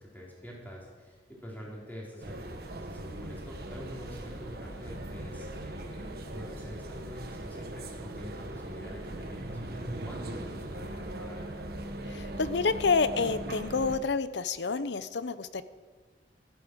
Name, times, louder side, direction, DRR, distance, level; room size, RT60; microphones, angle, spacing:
voice 1, 0.0-11.5, equal, 10° left, -4 dB, 3.8 m, -46 dB
sound 1, 2.2-14.0, right 1 dB, 60° right, 1.5 m, -39 dB
voice 2, 12.1-15.6, left 4 dB, 75° left, 14 dB, 0.7 m, -28 dB
13.5 x 11.5 x 6.2 m, 1.4 s
head